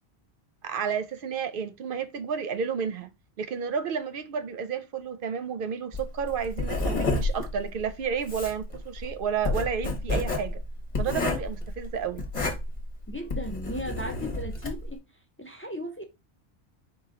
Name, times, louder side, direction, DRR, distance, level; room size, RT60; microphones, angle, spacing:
voice 1, 0.6-3.1 3.4-10.6 11.0-12.2, right 6 dB, 60° right, 0.6 m, -31 dB
Writing, 5.9-14.9, left 2 dB, 40° left, 1.1 m, -30 dB
voice 2, 13.1-15.0 15.4-16.0, left 1 dB, 20° left, 0.3 m, -36 dB
4.6 x 2.9 x 3.7 m
omnidirectional pair, 1.1 m